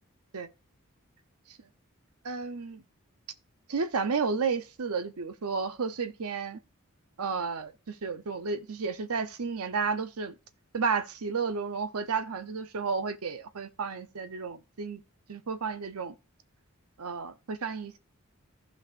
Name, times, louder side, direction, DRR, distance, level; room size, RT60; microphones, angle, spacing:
voice 1, 2.2-2.8 3.7-6.6 7.2-10.3 10.7-15.0 15.3-16.1 17.0-18.0, right 5 dB, 80° right, 0.7 m, -32 dB
15.0 x 5.4 x 2.5 m
head